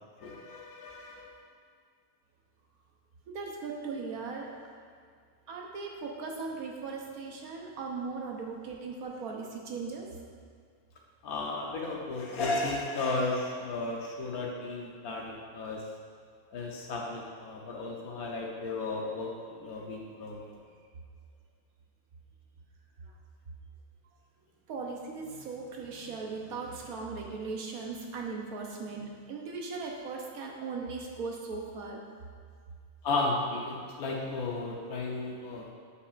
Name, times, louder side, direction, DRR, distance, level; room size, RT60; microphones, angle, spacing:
voice 1, 0.2-1.4 11.2-15.8 16.5-20.5 33.0-35.7, left 2 dB, 80° left, -1 dB, 1.3 m, -34 dB
voice 2, 3.3-4.5 5.5-10.0 23.0-23.1 24.7-32.0, right 4 dB, 75° right, 0 dB, 1.3 m, -38 dB
8.2 x 5.6 x 2.5 m, 2.1 s
omnidirectional pair, 1.6 m